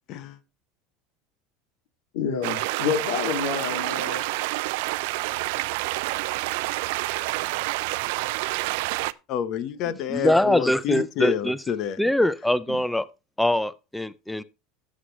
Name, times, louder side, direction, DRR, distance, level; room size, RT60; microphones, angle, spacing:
voice 1, 0.1-0.4 9.3-12.0, left 9 dB, 50° left, 1.0 m, -28 dB
voice 2, 2.1-4.2 12.7-12.8, left 6 dB, 75° left, 2.4 m, -28 dB
sound 1, 2.4-9.1, right 20 dB, 70° right, 0.4 m, -28 dB
voice 3, 10.1-11.6 12.0-13.0 13.4-14.4, left 1 dB, 5° left, 0.5 m, -23 dB
12.5 x 7.5 x 3.2 m
supercardioid pair, 140°, 0 cm